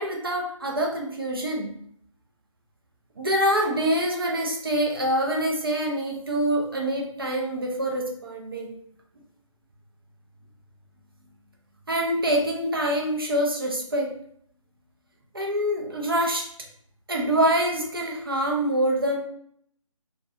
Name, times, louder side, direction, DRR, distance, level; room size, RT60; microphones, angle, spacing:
voice 1, 0.0-1.7 3.2-8.7 11.9-14.1 15.3-16.5 17.1-19.2, right 1 dB, 45° right, 0 dB, 0.5 m, -25 dB
2.7 x 2.2 x 2.4 m, 0.66 s
figure-of-eight pair, 170°, 17 cm